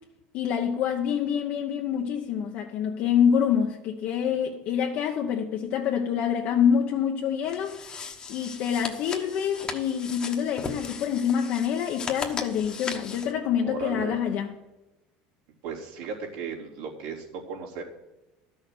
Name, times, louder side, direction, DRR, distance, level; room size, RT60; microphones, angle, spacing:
voice 1, 0.3-7.8 8.3-14.5, left 8 dB, 50° left, 0.9 m, -26 dB
sound 1, 7.4-13.3, left 5 dB, 25° left, 1.1 m, -37 dB
voice 2, 13.6-14.2 15.6-17.8, right 5 dB, 75° right, 3.4 m, -35 dB
13.0 x 6.4 x 7.7 m
cardioid pair, 155°, 4 cm